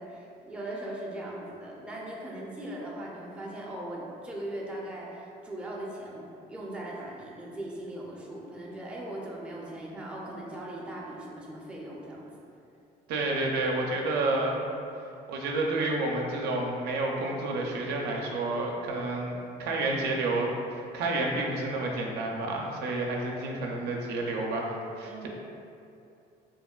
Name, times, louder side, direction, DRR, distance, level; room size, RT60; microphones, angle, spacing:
voice 1, 0.0-12.3 25.0-25.3, right 1 dB, 5° right, -4 dB, 0.4 m, -39 dB
voice 2, 13.1-14.6 15.3-19.3 19.6-20.5 20.9-25.3, right 2 dB, 75° right, -1 dB, 0.4 m, -30 dB
3.5 x 2.2 x 2.2 m, 2.6 s
cardioid pair, 110°, 17 cm